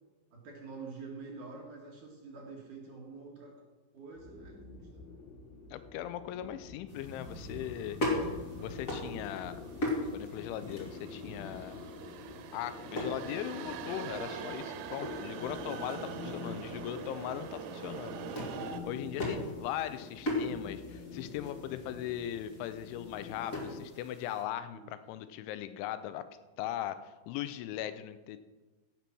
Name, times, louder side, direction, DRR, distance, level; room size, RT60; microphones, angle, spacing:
voice 1, 0.3-3.5 3.9-5.0 24.7-24.9, right 4 dB, 55° right, -2 dB, 2.7 m, -47 dB
sound 1, 4.1-23.8, left 3 dB, 55° left, 3.7 m, -46 dB
voice 2, 5.7-9.6 10.1-11.9 12.5-18.2 18.5-26.3 26.6-28.4, left 11 dB, 85° left, 12 dB, 3.1 m, -39 dB
sound 2, 6.9-24.4, left 1 dB, 30° left, 1.7 m, -40 dB
sound 3, 7.1-18.8, right 9 dB, 85° right, 3.1 m, -45 dB
16.0 x 7.0 x 6.1 m, 1.2 s
omnidirectional pair, 5.4 m